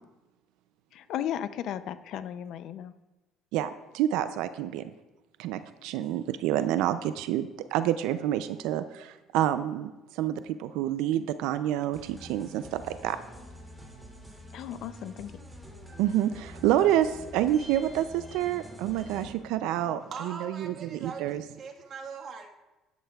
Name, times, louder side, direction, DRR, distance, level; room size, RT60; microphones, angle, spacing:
voice 1, 0.9-2.9 14.5-15.3, left 10 dB, 65° left, 13 dB, 0.5 m, -35 dB
voice 2, 3.5-4.9 5.4-13.2 16.0-21.4, right 12 dB, 80° right, 12 dB, 0.4 m, -28 dB
sound 1, 11.9-19.3, equal, 5° right, 2.3 m, -47 dB
voice 3, 18.4-22.5, right 5 dB, 55° right, 2 dB, 1.5 m, -43 dB
11.0 x 11.0 x 2.3 m, 1.1 s
supercardioid pair, 90°, 0 cm